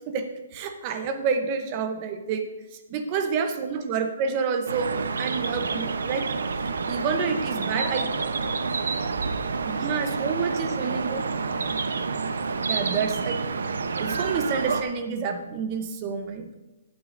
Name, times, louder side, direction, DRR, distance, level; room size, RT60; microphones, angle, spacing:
voice 1, 0.0-6.3 6.9-8.1 9.7-11.2 12.6-13.4 14.0-16.5, right 5 dB, 20° right, 7 dB, 0.7 m, -29 dB
voice 2, 3.2-3.8 7.6-9.9 10.3-11.7, left 2 dB, 20° left, -13 dB, 3.4 m, -44 dB
sound 1, 4.7-14.8, right 4 dB, 85° right, 0.7 m, -28 dB
15.0 x 8.5 x 2.5 m, 1.1 s
hypercardioid pair, 175°, 0 cm